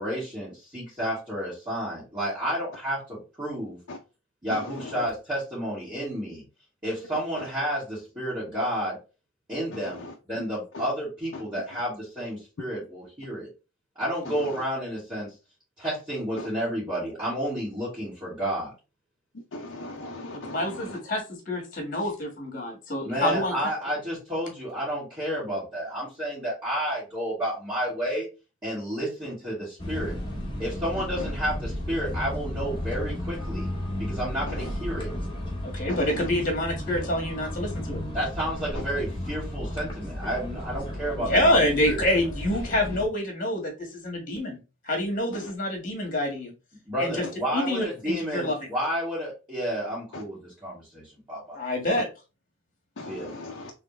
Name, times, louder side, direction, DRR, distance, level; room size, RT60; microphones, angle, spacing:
voice 1, 0.0-3.8 4.4-6.4 6.8-9.0 9.5-13.5 14.0-15.3 15.8-18.7 23.0-28.3 28.6-30.2 30.6-33.7 34.0-35.1 38.1-42.0 46.9-51.6 53.1-53.3, equal, 20° right, 2.2 m, -31 dB
voice 2, 19.5-21.0 35.9-36.3 50.1-50.2 53.0-53.7, left 2 dB, 55° left, 0.5 m, -38 dB
voice 3, 20.4-23.5 35.6-38.0 41.2-44.6 44.8-46.5 47.0-47.2 47.5-48.5 51.5-52.1, left 1 dB, 40° left, 1.7 m, -27 dB
sound 1, 29.8-43.0, left 1 dB, 25° left, 1.4 m, -33 dB
4.0 x 3.4 x 3.1 m
head